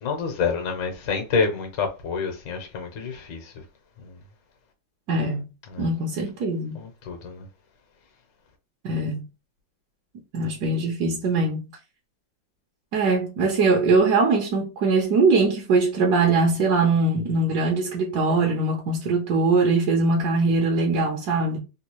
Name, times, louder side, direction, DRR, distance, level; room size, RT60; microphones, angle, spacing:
voice 1, 0.0-3.5 4.0-4.1 5.7-5.9 6.7-7.4, left 5 dB, 70° left, 1.4 m, -28 dB
voice 2, 5.1-5.5 5.8-6.8 8.8-9.2 10.3-11.6 12.9-21.6, right 3 dB, 65° right, 1.0 m, -21 dB
3.6 x 2.3 x 2.9 m
omnidirectional pair, 2.2 m